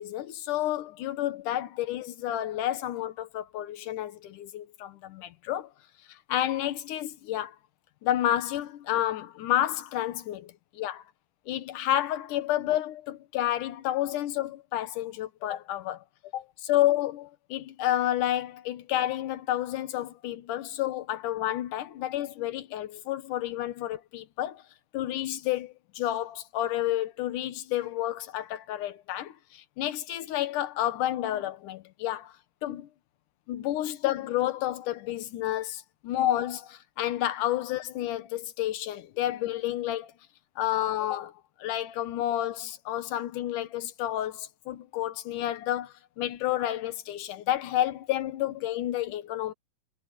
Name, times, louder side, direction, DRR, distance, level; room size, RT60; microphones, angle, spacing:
voice 1, 0.0-5.7 6.1-7.6 8.0-11.0 11.5-16.0 16.3-24.6 24.9-32.4 32.6-32.9 33.5-40.1 40.6-49.5, left 13 dB, 70° left, 2.6 m, -30 dB
omnidirectional pair, 3.9 m